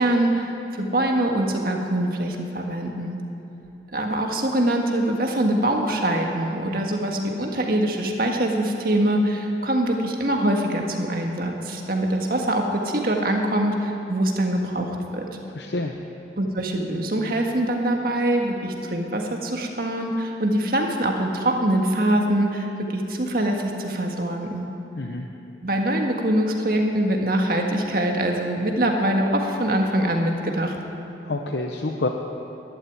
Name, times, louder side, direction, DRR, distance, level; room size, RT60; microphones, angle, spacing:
voice 1, 0.0-3.2 3.9-15.3 16.4-24.7 25.6-30.7, right 1 dB, 50° right, 2 dB, 1.8 m, -23 dB
voice 2, 15.5-15.9 25.0-25.2 31.2-32.1, left 2 dB, 70° left, 3 dB, 0.8 m, -27 dB
12.5 x 11.5 x 9.5 m, 2.8 s
head